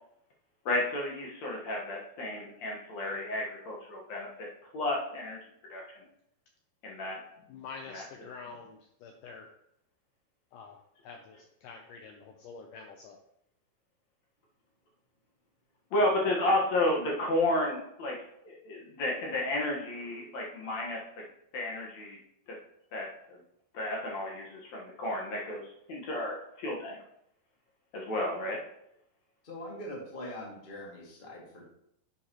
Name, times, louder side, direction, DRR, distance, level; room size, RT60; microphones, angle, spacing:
voice 1, 0.7-4.5 4.7-5.4 5.7-5.8 6.8-7.2 7.9-8.0 15.9-18.2 18.4-21.2 21.5-22.2 22.9-23.1 23.7-27.0 27.9-28.6, left 1 dB, 55° left, -2 dB, 2.3 m, -32 dB
voice 2, 7.5-9.5 10.5-10.8 11.0-13.2, left 5 dB, 75° left, 3 dB, 2.1 m, -47 dB
voice 3, 29.4-31.6, left 1 dB, 20° left, -3 dB, 1.7 m, -42 dB
11.0 x 7.2 x 3.0 m, 0.76 s
omnidirectional pair, 4.2 m